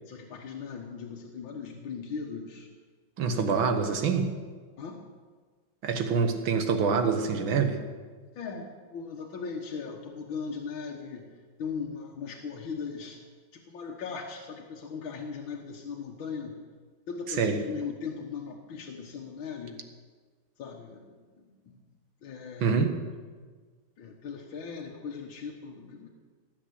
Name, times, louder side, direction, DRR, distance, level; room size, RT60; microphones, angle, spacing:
voice 1, 0.0-2.7 3.3-3.6 4.8-5.0 8.4-11.3 11.6-13.2 13.5-16.6 17.1-19.8 20.6-21.2 21.4-21.8 22.2-22.8 24.0-26.1, left 5 dB, 85° left, 0 dB, 2.1 m, -38 dB
voice 2, 3.2-4.3 5.8-7.8 17.3-17.6 22.6-23.0, right 5 dB, 85° right, 7 dB, 2.1 m, -26 dB
18.5 x 7.4 x 8.2 m, 1.5 s
omnidirectional pair, 2.1 m